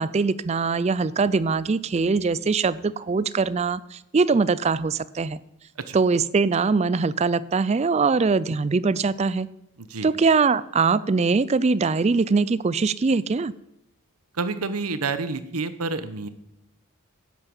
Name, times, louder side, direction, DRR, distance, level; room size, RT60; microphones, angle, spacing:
voice 1, 0.0-5.4 5.9-9.5 10.0-13.5, right 4 dB, 30° right, 18 dB, 0.4 m, -22 dB
voice 2, 9.8-10.1 14.3-16.3, right 3 dB, 85° right, 12 dB, 1.0 m, -29 dB
11.0 x 9.4 x 7.1 m, 0.89 s
head